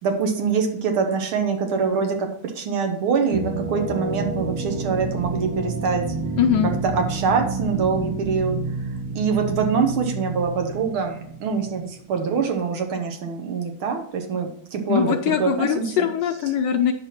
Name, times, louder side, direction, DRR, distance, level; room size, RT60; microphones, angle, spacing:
voice 1, 0.0-6.1 6.6-8.6 9.1-16.1, right 5 dB, 85° right, 4 dB, 2.1 m, -24 dB
sound 1, 3.3-12.0, right 3 dB, 70° right, 1.9 m, -29 dB
voice 2, 6.4-6.7 14.9-16.9, left 9 dB, 70° left, 4 dB, 1.2 m, -21 dB
8.9 x 6.0 x 4.3 m, 0.69 s
omnidirectional pair, 2.2 m